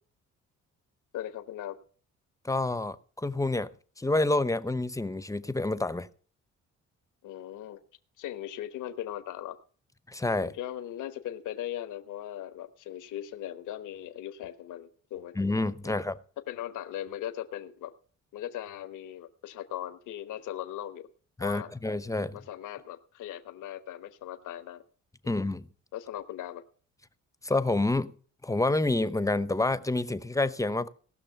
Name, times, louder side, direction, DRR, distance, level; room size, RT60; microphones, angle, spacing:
voice 1, 1.1-1.8 7.2-7.8 8.2-9.6 10.4-15.4 15.8-16.0 16.5-17.9 18.3-21.1 21.4-21.7 22.3-24.8 25.2-25.3 25.9-26.6, left 12 dB, 85° left, 1.1 m, -39 dB
voice 2, 2.4-3.7 4.0-6.1 10.1-10.5 15.4-16.2 21.4-22.4 25.2-25.7 27.4-28.1 28.4-30.9, left 2 dB, 10° left, 0.7 m, -28 dB
18.0 x 6.3 x 6.9 m
cardioid pair, 90°, 30 cm